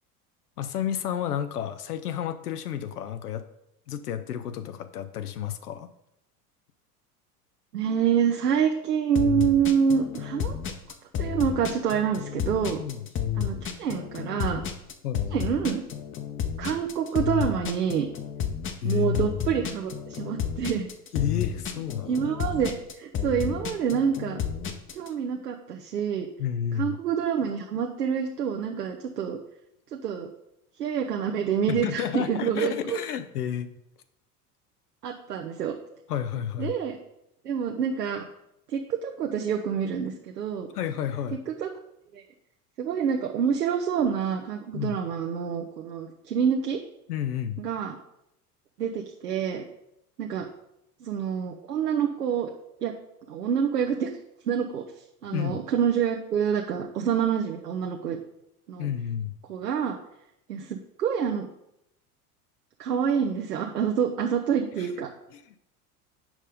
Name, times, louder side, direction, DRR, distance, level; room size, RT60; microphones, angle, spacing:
voice 1, 0.6-3.4 3.9-5.9 12.8-13.1 15.0-15.3 18.8-19.3 21.1-22.1 26.4-27.0 31.7-33.7 36.1-36.7 40.7-41.4 44.7-45.0 47.1-47.6 55.3-55.6 58.8-59.3 64.8-64.9 65.3-65.4, left 9 dB, 70° left, 10 dB, 0.7 m, -31 dB
voice 2, 7.7-10.6 11.2-12.8 13.4-14.6 15.3-15.8 16.6-18.1 18.8-20.9 22.0-24.4 24.9-26.3 26.8-29.4 29.9-30.3 30.8-33.0 35.0-35.7 36.6-37.0 37.4-38.3 38.7-40.7 41.5-41.7 42.1-42.2 42.8-46.8 47.6-48.0 48.8-49.6 50.2-50.5 51.0-52.5 52.8-52.9 53.3-54.1 54.5-54.8 55.2-58.2 58.7-58.9 59.5-60.0 60.5-61.5 62.8-65.1, right 7 dB, 80° right, 2 dB, 0.8 m, -27 dB
sound 1, 9.1-25.1, left 8 dB, 25° left, 0.9 m, -31 dB
7.4 x 5.4 x 5.1 m, 0.82 s
figure-of-eight pair, 75°, 47 cm